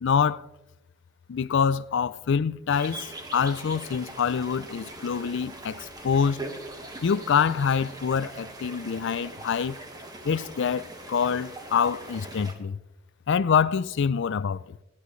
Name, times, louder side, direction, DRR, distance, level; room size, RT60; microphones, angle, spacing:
voice 1, 0.0-0.5 1.3-6.5 7.0-9.8 10.2-12.8 13.3-14.8, left 6 dB, 60° left, 0.4 m, -26 dB
sound 1, 2.7-12.5, right 2 dB, 20° right, 1.5 m, -41 dB
22.0 x 10.5 x 3.1 m
head